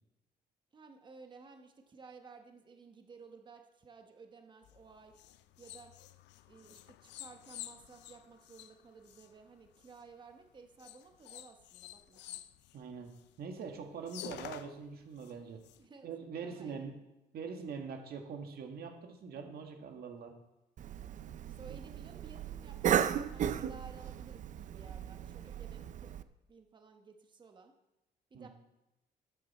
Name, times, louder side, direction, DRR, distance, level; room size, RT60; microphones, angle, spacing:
voice 1, 0.7-5.1 5.6-5.9 6.5-12.4 15.8-16.1 16.4-16.8 21.5-26.1 26.5-27.7 28.3-28.5, right 4 dB, 25° right, 5 dB, 1.1 m, -55 dB
sound 1, 4.6-10.1 10.8-13.4 13.7-13.8 14.0-15.8, left 13 dB, 85° left, 0.5 m, -50 dB
voice 2, 12.7-15.6 16.0-16.9 17.3-20.3 28.3-28.5, right 5 dB, 60° right, 4 dB, 1.8 m, -43 dB
Cough, 20.8-26.2, right 9 dB, 45° right, 0.5 m, -35 dB
12.5 x 9.2 x 4.3 m, 0.95 s
cardioid pair, 135°, 18 cm